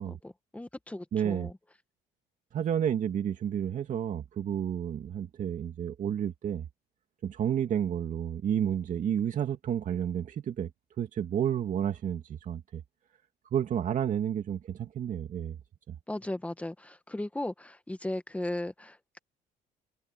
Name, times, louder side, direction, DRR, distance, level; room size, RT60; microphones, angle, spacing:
voice 1, 0.0-1.6 16.1-19.2, left 1 dB, 10° left, 1.7 m, -37 dB
voice 2, 1.1-1.5 2.5-6.6 7.2-10.7 11.0-12.8 13.5-15.6 15.9-16.0, right 9 dB, 50° right, 2.1 m, -31 dB
cardioid pair, 110°, 17 cm